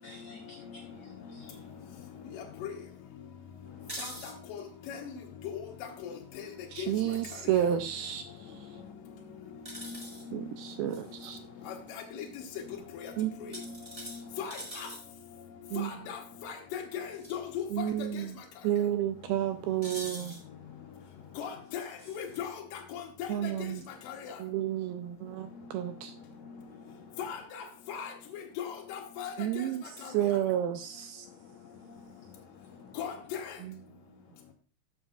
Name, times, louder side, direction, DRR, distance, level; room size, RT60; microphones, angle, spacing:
voice 1, 0.0-2.7 3.7-4.3 7.4-7.5 8.0-12.0 12.7-14.7 15.4-16.1 18.6-21.6 22.3-22.5 24.0-24.4 24.7-27.5 30.0-30.2 30.6-33.3 33.9-34.5, left 6 dB, 85° left, 1.6 m, -54 dB
voice 2, 2.3-2.7 4.0-4.1 4.5-5.0 5.5-5.7 6.0-6.5 6.8-6.9 10.3-10.4 11.7-12.3 13.0-13.1 14.4-14.9 15.8-18.1 21.4-23.5 24.1-24.3 27.2-29.3 30.0-30.1 33.0-33.5, left 8 dB, 70° left, 2.4 m, -39 dB
sound 1, 3.8-4.3 6.9-7.2 9.6-10.2 10.9-11.3 13.5-15.0 17.1-17.3 17.7-17.8 19.8-20.4 21.8-22.4, right 1 dB, 15° right, 1.1 m, -44 dB
voice 3, 6.7-8.3 10.3-11.4 13.2-13.3 15.7-15.9 17.7-18.3 18.6-20.4 23.3-23.8 24.4-26.1 29.4-31.3 33.6-33.7, right 11 dB, 80° right, 2.3 m, -31 dB
13.5 x 7.1 x 2.4 m
omnidirectional pair, 4.6 m